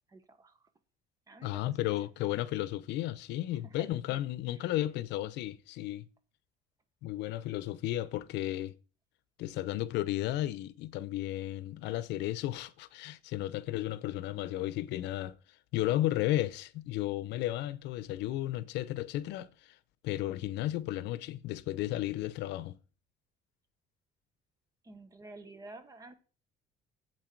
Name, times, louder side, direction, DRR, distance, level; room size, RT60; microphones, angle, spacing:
voice 1, 0.1-0.7 1.3-2.1 3.5-4.2 4.5-4.7 24.8-26.1, right 2 dB, 20° right, 1.2 m, -51 dB
voice 2, 1.4-6.0 7.0-8.7 9.4-15.4 15.7-19.8 20.0-22.8, left 14 dB, 80° left, 0.7 m, -34 dB
9.1 x 8.2 x 4.6 m
cardioid pair, 150°, 18 cm